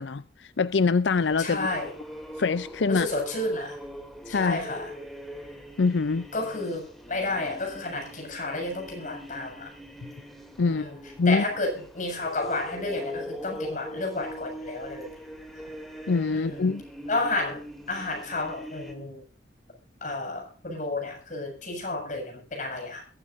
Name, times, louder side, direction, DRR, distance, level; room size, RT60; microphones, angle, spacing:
voice 1, 0.0-1.7 2.4-3.1 4.3-4.6 5.8-6.3 10.6-10.8 11.2-11.4 16.1-16.8, left 4 dB, 85° left, 0.5 m, -24 dB
sound 1, 1.1-18.9, equal, ahead, 2.8 m, -42 dB
voice 2, 1.4-1.9 2.9-3.8 4.3-4.9 6.3-9.7 10.6-11.0 11.3-15.1 16.3-16.7 17.1-19.2 20.0-23.1, left 2 dB, 45° left, 7.2 m, -31 dB
22.0 x 13.0 x 2.6 m
head